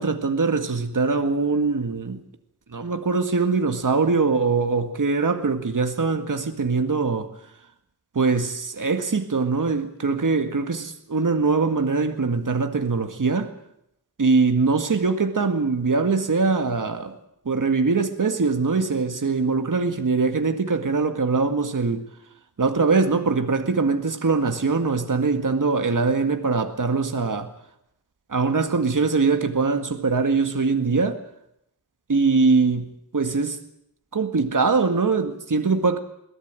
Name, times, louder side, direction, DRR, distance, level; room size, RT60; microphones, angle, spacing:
voice 1, 0.0-2.2 2.7-7.3 8.2-13.5 14.2-17.1 17.5-22.0 22.6-27.5 28.3-31.2 32.1-33.6 34.1-36.0, right 4 dB, 55° right, 1.9 m, -22 dB
22.0 x 16.5 x 9.1 m
wide cardioid pair, 85°, 39 cm